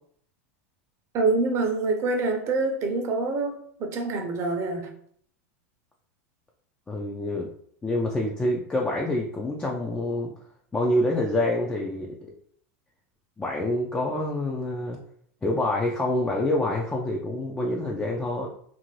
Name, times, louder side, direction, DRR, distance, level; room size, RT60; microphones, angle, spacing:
voice 1, 1.1-4.9, right 3 dB, 40° right, 4 dB, 0.7 m, -26 dB
voice 2, 6.9-7.5 7.8-10.3 10.7-12.2 13.4-15.0 15.4-18.5, left 1 dB, 10° left, -2 dB, 0.4 m, -26 dB
2.6 x 2.6 x 3.1 m, 0.63 s
hypercardioid pair, 115°, 8 cm